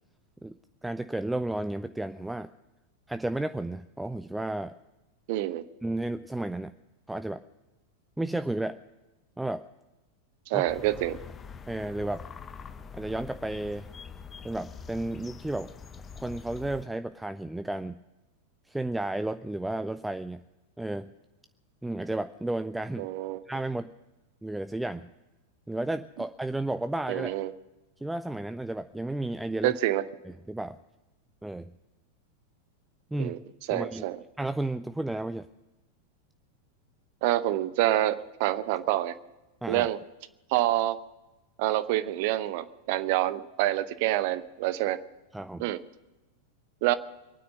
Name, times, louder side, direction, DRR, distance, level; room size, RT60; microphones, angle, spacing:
voice 1, 0.8-2.5 3.1-4.8 5.8-6.7 7.1-7.4 8.2-8.8 9.4-9.6 10.5-10.7 11.7-12.2 12.9-13.9 14.4-15.7 16.2-18.0 18.7-20.4 20.8-21.1 21.8-23.1 23.5-23.9 24.4-25.1 25.7-27.3 28.0-29.8 30.5-30.8 31.4-31.7 33.1-33.4 33.7-34.0 34.4-35.5 39.6-39.9 45.3-45.7, right 1 dB, 5° right, 11 dB, 0.5 m, -32 dB
voice 2, 5.3-5.6 10.5-11.2 23.0-23.4 27.1-27.5 29.6-30.0 33.2-33.4 33.7-34.2 37.2-39.1 39.7-40.0 40.5-41.0 41.6-45.0 45.6-45.8 46.8-46.9, right 15 dB, 50° right, 14 dB, 0.8 m, -27 dB
sound 1, 10.7-16.8, left 6 dB, 20° left, 1.0 m, -44 dB
23.5 x 9.6 x 6.4 m, 1.0 s
figure-of-eight pair, 90°, 0 cm